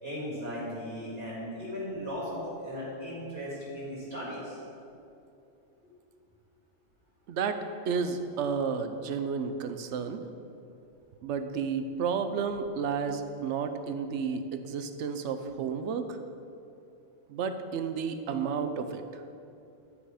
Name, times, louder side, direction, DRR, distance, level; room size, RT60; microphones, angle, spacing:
voice 1, 0.0-4.6, equal, 55° right, -8 dB, 2.2 m, -37 dB
voice 2, 7.3-7.6 7.9-10.3 11.2-16.2 17.3-19.2, right 6 dB, 75° right, 8 dB, 0.9 m, -32 dB
10.0 x 4.9 x 4.9 m, 2.6 s
omnidirectional pair, 1.3 m